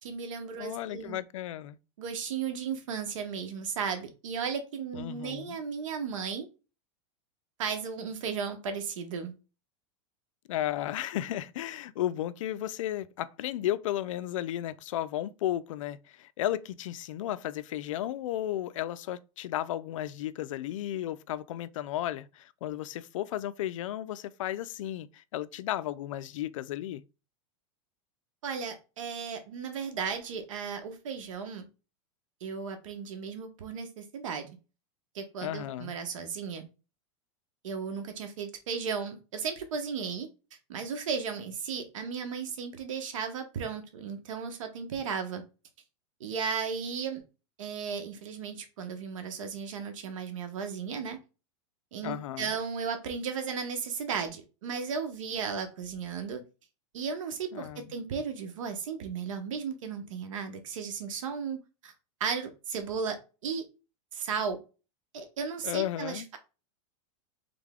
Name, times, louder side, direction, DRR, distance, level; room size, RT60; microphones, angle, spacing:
voice 1, 0.0-1.2 2.0-6.5 7.6-9.3 28.4-31.7 32.4-34.5 35.1-36.7 37.6-40.3 40.7-45.4 46.2-47.2 47.6-51.2 51.9-56.4 56.9-61.9 62.2-63.2 63.4-63.6 64.1-64.6 65.1-66.4, right 6 dB, 85° right, 1.2 m, -35 dB
voice 2, 0.6-1.8 5.0-5.6 10.5-27.0 35.4-36.0 52.0-52.5 57.5-57.9 65.6-66.3, left 12 dB, 80° left, 0.4 m, -34 dB
3.7 x 3.4 x 3.6 m
supercardioid pair, 145°, 16 cm